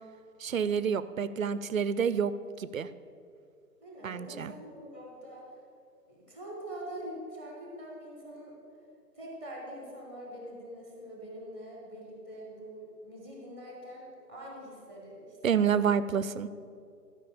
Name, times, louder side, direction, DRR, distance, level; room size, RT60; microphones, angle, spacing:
voice 1, 0.4-2.3 2.6-2.9 4.0-4.5 15.4-16.5, right 7 dB, 60° right, 15 dB, 0.5 m, -28 dB
voice 2, 3.8-5.6 6.1-8.6 9.1-15.6, equal, 5° left, -2 dB, 0.7 m, -44 dB
12.0 x 5.2 x 6.8 m, 2.4 s
figure-of-eight pair, 140°, 48 cm